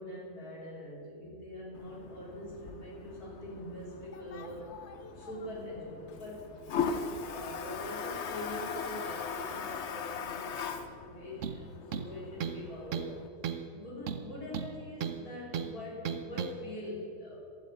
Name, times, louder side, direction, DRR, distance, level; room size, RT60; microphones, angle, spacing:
voice 1, 0.0-4.8 5.1-13.2 13.7-17.5, left 1 dB, 45° left, -5 dB, 4.0 m, -44 dB
Toilet flush, 1.7-13.3, left 6 dB, 80° left, 0.6 m, -39 dB
sound 1, 11.4-11.6 11.9-12.6 12.9-13.1 13.4-13.7 14.1-15.2 15.5-15.7 16.0-16.5, right 8 dB, 70° right, 0.7 m, -35 dB
11.5 x 8.3 x 8.7 m, 2.4 s
omnidirectional pair, 2.2 m